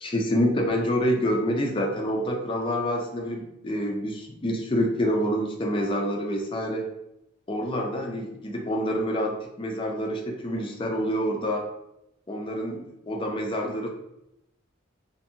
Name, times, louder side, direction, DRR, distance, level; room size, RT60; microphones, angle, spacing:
voice 1, 0.0-6.9 7.5-11.7 12.3-13.9, equal, 25° left, 1 dB, 0.4 m, -27 dB
2.6 x 2.5 x 2.7 m, 0.85 s
head